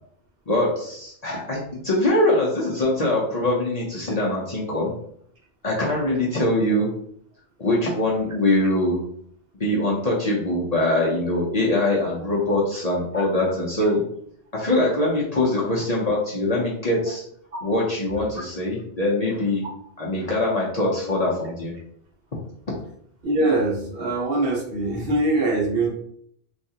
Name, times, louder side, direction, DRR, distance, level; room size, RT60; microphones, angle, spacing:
voice 1, 0.5-4.9 5.6-6.9 7.6-9.0 9.6-14.0 14.5-17.2 17.6-19.6 20.0-21.7, left 1 dB, 45° left, -5 dB, 0.6 m, -23 dB
voice 2, 23.2-25.9, right 2 dB, 60° right, -2 dB, 1.0 m, -23 dB
3.4 x 2.4 x 2.7 m, 0.66 s
omnidirectional pair, 1.2 m